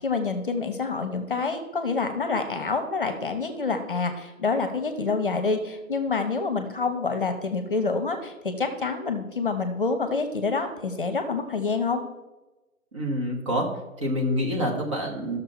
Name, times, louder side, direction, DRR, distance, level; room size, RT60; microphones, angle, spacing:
voice 1, 0.0-12.0, left 4 dB, 40° left, 8 dB, 1.0 m, -27 dB
voice 2, 12.9-13.7 14.0-15.4, equal, 20° right, 0 dB, 1.2 m, -27 dB
13.5 x 6.6 x 4.2 m, 1.1 s
figure-of-eight pair, 150°, 43 cm